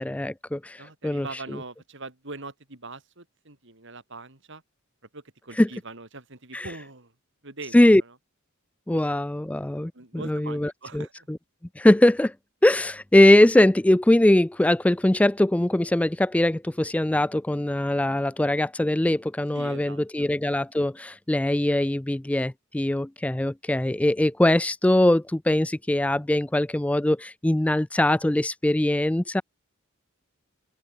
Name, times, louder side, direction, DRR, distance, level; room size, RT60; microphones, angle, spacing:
voice 1, 0.0-1.3 5.6-5.7 6.5-6.7 7.7-8.0 8.9-11.4 11.8-12.3 12.6-29.4, left 1 dB, 5° left, 0.3 m, -21 dB
voice 2, 0.8-4.6 5.1-7.1 7.4-8.2 8.9-9.0 9.9-11.3 19.5-20.3, right 3 dB, 60° right, 3.5 m, -42 dB
head